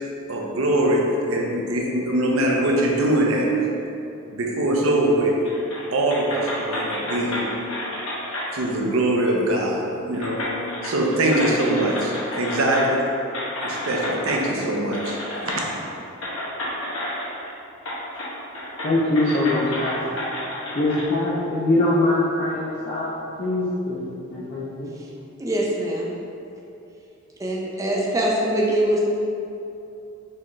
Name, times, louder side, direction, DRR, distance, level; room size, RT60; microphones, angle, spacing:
voice 1, 0.0-3.5 4.3-5.4 5.9-7.5 8.5-10.6 10.8-13.1 13.6-15.2 15.4-15.6, right 1 dB, 70° right, -1 dB, 0.6 m, -22 dB
sound 1, 5.4-5.8 6.1-8.5 9.6-9.7 10.1-13.0 13.3-14.4 14.9-15.6 16.2-17.5 17.8-18.3 18.5-21.0, left 1 dB, 75° left, 1.2 m, -30 dB
voice 2, 18.8-20.0 20.8-23.1 23.4-24.9, left 2 dB, 40° left, -8 dB, 0.5 m, -23 dB
voice 3, 25.4-26.1 27.4-29.0, right 1 dB, 15° right, -3 dB, 0.3 m, -23 dB
4.4 x 3.4 x 3.1 m, 2.8 s
head